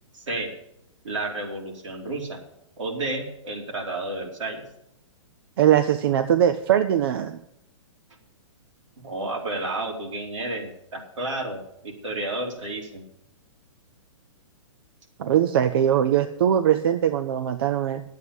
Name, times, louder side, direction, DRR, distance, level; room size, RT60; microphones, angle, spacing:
voice 1, 0.1-0.5 1.0-2.4 2.8-4.6 9.0-13.0, right 2 dB, 70° right, 0 dB, 3.2 m, -31 dB
voice 2, 5.6-7.4 15.2-18.0, right 10 dB, 50° right, 9 dB, 0.7 m, -21 dB
10.5 x 8.4 x 8.3 m, 0.79 s
figure-of-eight pair, 115°, 16 cm